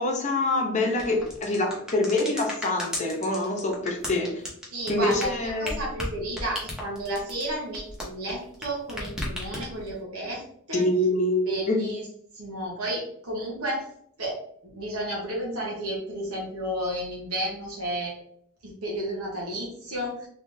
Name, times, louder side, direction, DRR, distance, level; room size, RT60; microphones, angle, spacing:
voice 1, 0.0-4.4 4.9-5.8 10.7-11.8, left 2 dB, 35° left, 1 dB, 0.7 m, -25 dB
sound 1, 0.9-8.6 8.9-9.9, left 1 dB, 5° right, 0.9 m, -34 dB
voice 2, 4.7-10.4 10.7-10.9 11.5-12.1 12.3-13.9 14.2-14.3 14.6-18.2 18.6-20.3, right 1 dB, 90° right, -3 dB, 1.0 m, -32 dB
3.6 x 3.0 x 2.6 m, 0.66 s
head